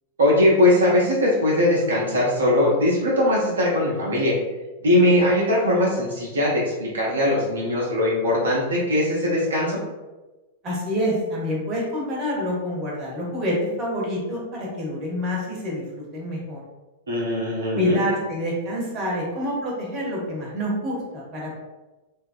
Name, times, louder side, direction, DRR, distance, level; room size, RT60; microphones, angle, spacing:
voice 1, 0.2-4.3 4.8-9.8 17.1-18.0, left 1 dB, 70° right, -4 dB, 0.6 m, -20 dB
voice 2, 10.6-16.6 17.7-21.5, equal, 30° right, -3 dB, 0.9 m, -27 dB
2.7 x 2.3 x 2.5 m, 1.1 s
figure-of-eight pair, 95°, 0 cm